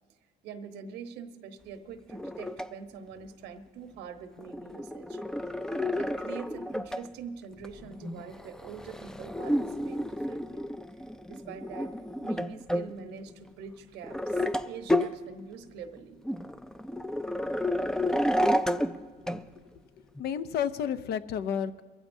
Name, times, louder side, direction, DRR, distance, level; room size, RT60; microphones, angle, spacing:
voice 1, 0.4-5.2 5.7-10.6 11.3-12.0 12.2-16.2, right 6 dB, 90° right, 7 dB, 1.1 m, -44 dB
sound 1, 2.1-2.7 4.4-7.1 7.6-12.9 13.3-13.4 14.0-14.6 14.9-15.1 16.0-16.1 16.3-19.0 19.3-19.4 20.2-20.3, left 1 dB, 5° left, 0.4 m, -30 dB
voice 2, 20.2-21.8, left 8 dB, 70° left, 13 dB, 0.6 m, -31 dB
23.5 x 14.5 x 2.7 m, 1.5 s
cardioid pair, 110°, 17 cm